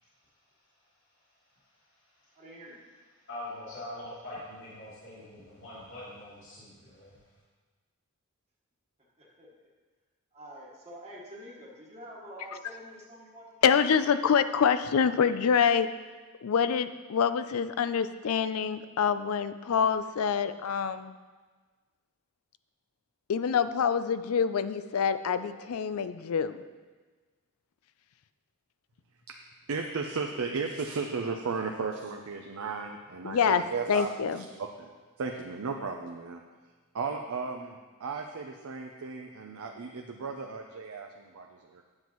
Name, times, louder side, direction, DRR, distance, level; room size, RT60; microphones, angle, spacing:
voice 1, 2.3-2.8 9.2-9.7 10.3-13.5, equal, 30° right, -5 dB, 1.4 m, -47 dB
voice 2, 3.3-7.2, left 1 dB, 60° left, -10 dB, 2.7 m, -43 dB
voice 3, 13.6-15.9 16.4-21.1 23.3-26.6 33.2-33.6 33.9-34.4, left 7 dB, 80° left, 12 dB, 0.4 m, -26 dB
voice 4, 29.7-34.9 35.2-36.4 36.9-41.8, right 4 dB, 75° right, 3 dB, 0.5 m, -35 dB
9.7 x 7.2 x 3.0 m, 1.4 s
head